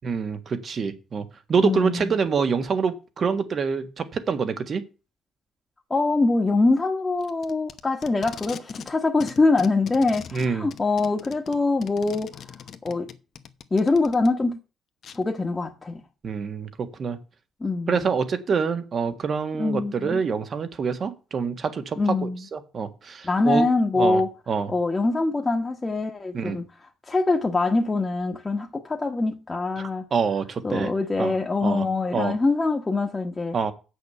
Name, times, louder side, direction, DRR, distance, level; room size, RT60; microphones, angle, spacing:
voice 1, 0.0-4.9 10.3-10.7 16.2-17.2 17.9-23.7 23.9-24.2 24.5-24.7 26.3-26.6 29.8-30.9 31.2-31.3 31.6-31.8 32.1-32.4 33.5-33.7, right 5 dB, 50° right, 1.6 m, -26 dB
voice 2, 1.6-2.1 5.9-12.4 12.8-13.1 13.7-14.6 15.1-16.0 17.6-18.0 19.6-20.2 22.0-22.4 23.2-24.3 24.7-26.6 27.1-30.1 30.6-33.6, left 3 dB, 25° left, 1.3 m, -24 dB
Packing tape duct tape, 7.2-8.9 9.2-14.3 15.0-15.2, left 8 dB, 60° left, 1.0 m, -41 dB
8.1 x 6.5 x 6.8 m
cardioid pair, 90°, 0 cm